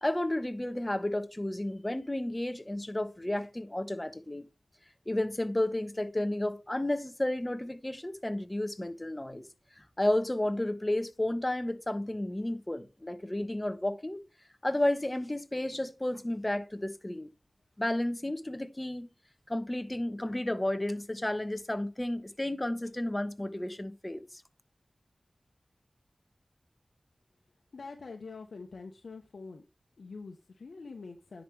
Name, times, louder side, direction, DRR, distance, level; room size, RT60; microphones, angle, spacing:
voice 1, 0.0-4.4 5.1-9.5 9.8-14.2 14.6-17.3 17.8-19.1 19.5-24.4, left 1 dB, 25° left, 1.1 m, -32 dB
voice 2, 27.7-29.6 30.0-31.4, left 4 dB, 90° left, 0.9 m, -45 dB
10.0 x 4.9 x 3.3 m
wide cardioid pair, 50°, 0 cm